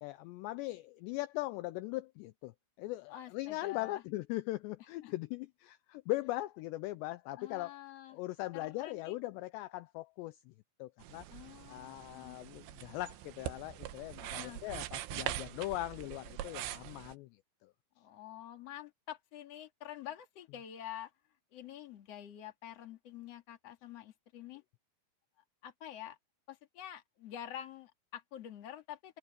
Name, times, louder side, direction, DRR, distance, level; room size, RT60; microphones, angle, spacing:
voice 1, 0.0-2.5 2.8-7.7 8.1-10.5 10.8-11.3 11.7-17.3 17.6-17.7, left 18 dB, 80° left, 2.6 m, -40 dB
voice 2, 3.1-4.0 5.0-5.1 7.4-8.2 8.5-9.2 11.3-12.4 14.2-14.6 18.0-21.1 21.5-24.6 25.6-26.2 26.5-29.2, left 11 dB, 45° left, 2.5 m, -47 dB
sound 1, 11.0-17.2, right 14 dB, 75° right, 3.1 m, -43 dB
omnidirectional pair, 5.4 m